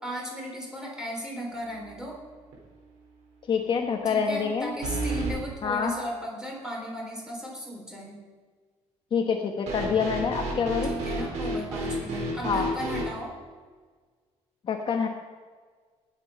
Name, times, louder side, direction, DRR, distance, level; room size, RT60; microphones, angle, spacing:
voice 1, 0.0-2.2 4.1-8.2 10.8-13.3, equal, 5° right, -2 dB, 3.9 m, -36 dB
sound 1, 1.7-2.2 2.5-2.6 4.8-5.4 9.7-13.1, right 1 dB, 85° right, 4.6 m, -31 dB
voice 2, 3.5-4.7 5.6-5.9 9.1-10.9 12.4-12.7 14.7-15.1, left 6 dB, 45° left, 3 dB, 1.1 m, -26 dB
18.5 x 8.0 x 5.6 m, 1.5 s
cardioid pair, 140°, 12 cm